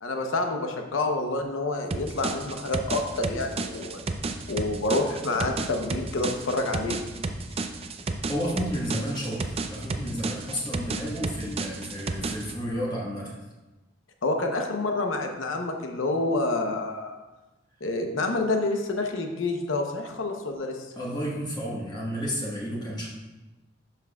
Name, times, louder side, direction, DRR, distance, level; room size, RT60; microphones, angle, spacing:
voice 1, 0.0-4.0 4.5-7.0 14.2-17.1 17.8-20.8, left 2 dB, 75° left, 4 dB, 0.8 m, -28 dB
sound 1, 1.9-12.6, right 3 dB, 30° right, 0.4 m, -32 dB
voice 2, 8.3-13.3 20.9-23.1, equal, 20° left, -4 dB, 1.4 m, -31 dB
11.0 x 5.9 x 2.3 m, 1.1 s
head